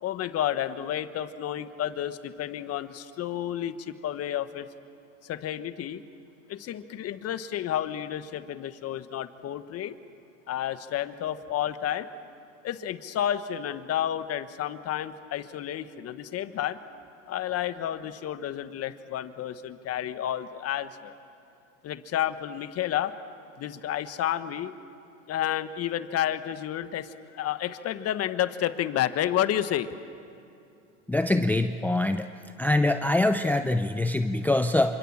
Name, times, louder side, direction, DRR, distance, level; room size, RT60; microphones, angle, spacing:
voice 1, 0.0-4.7 5.2-6.0 6.5-9.9 10.5-12.1 12.6-16.8 17.3-21.1 21.8-23.1 23.6-24.7 25.3-29.9, left 11 dB, 40° left, 11 dB, 1.3 m, -31 dB
voice 2, 31.1-32.3 32.6-35.0, left 2 dB, 5° left, 9 dB, 0.6 m, -24 dB
27.5 x 25.5 x 7.4 m, 2.6 s
supercardioid pair, 115°, 38 cm